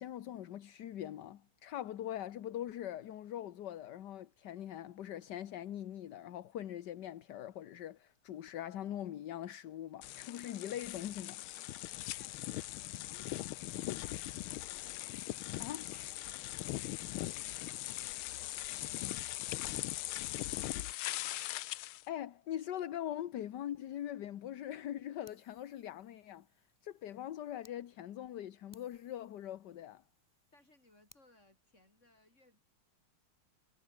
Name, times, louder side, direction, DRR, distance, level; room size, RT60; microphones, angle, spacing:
voice 1, 0.0-11.4 15.6-15.8 22.1-26.5 26.8-30.0, left 11 dB, 60° left, 1.4 m, -42 dB
sound 1, 10.0-22.0, left 15 dB, 75° left, 1.5 m, -40 dB
voice 2, 12.2-13.9 15.4-19.0 19.4-20.5 30.5-32.6, left 2 dB, 30° left, 7.2 m, -67 dB
Fire, 25.3-27.8 28.2-28.3 28.7-31.3, left 1 dB, 10° left, 3.5 m, -68 dB
omnidirectional pair, 2.4 m